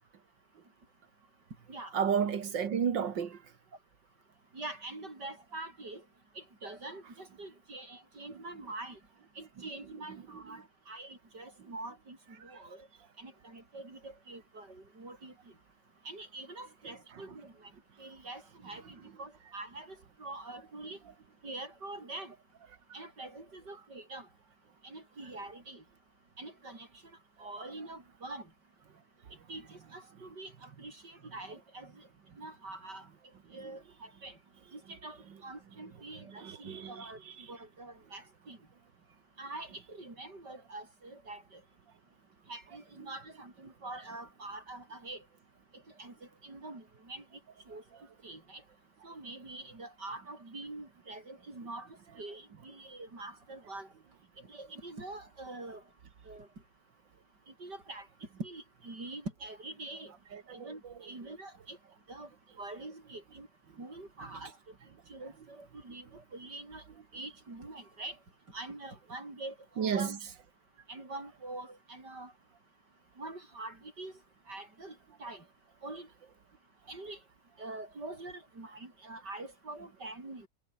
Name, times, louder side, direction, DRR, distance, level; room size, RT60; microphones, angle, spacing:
voice 1, 1.9-3.4 36.4-37.1 60.3-60.7 69.8-70.2, right 7 dB, 90° right, 2.5 m, -31 dB
voice 2, 4.5-6.0 6.4-9.0 9.4-12.2 12.4-12.9 13.2-15.3 16.1-17.7 18.0-21.0 21.4-22.3 22.9-24.3 24.8-25.8 26.4-26.9 27.4-28.5 29.5-32.0 32.4-33.1 33.5-34.4 34.7-37.2 37.5-38.6 39.4-41.6 42.5-45.2 46.0-46.1 46.4-47.2 47.7-47.8 48.2-48.6 49.0-53.9 54.5-55.8 56.3-56.5 57.6-58.1 58.4-60.1 60.5-61.8 62.1-62.3 62.6-63.5 63.8-64.5 65.1-66.8 67.1-68.2 68.5-70.2 70.9-72.3 73.2-74.1 74.5-75.4 75.8-76.1 76.9-77.2 77.6-80.5, right 2 dB, 70° right, 6.9 m, -45 dB
omnidirectional pair, 1.9 m